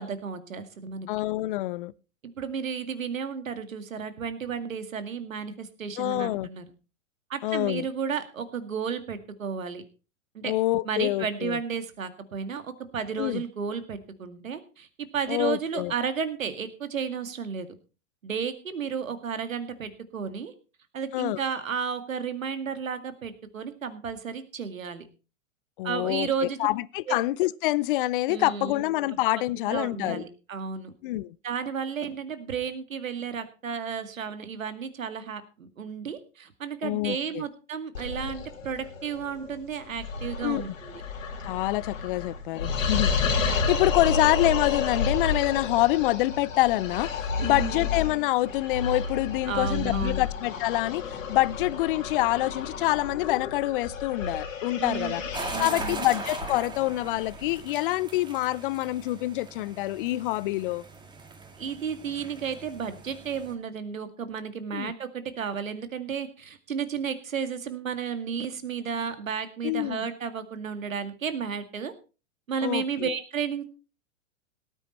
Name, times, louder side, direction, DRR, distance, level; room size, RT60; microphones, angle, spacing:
voice 1, 0.0-1.1 2.2-6.7 7.3-9.8 10.3-10.5 10.8-17.7 18.2-20.5 20.9-25.1 25.8-26.6 27.1-27.2 28.3-28.8 29.6-30.9 31.4-41.0 43.4-43.5 47.4-47.9 49.5-50.2 54.8-56.0 61.6-71.9 72.5-73.6, right 6 dB, 80° right, 2.1 m, -33 dB
voice 2, 1.1-1.9 6.0-6.5 7.4-7.9 10.4-11.6 13.2-13.4 15.3-15.9 21.1-21.4 25.8-30.2 31.0-31.3 36.8-37.5 40.4-40.6 41.4-55.2 55.6-60.8 64.7-64.9 69.6-70.1 72.6-73.1, left 18 dB, 40° left, 0.6 m, -26 dB
sound 1, 37.9-57.6, left 5 dB, 75° left, 3.1 m, -31 dB
sound 2, 55.3-63.5, right 3 dB, 10° right, 1.9 m, -40 dB
18.0 x 9.2 x 4.3 m
hypercardioid pair, 115°, 39 cm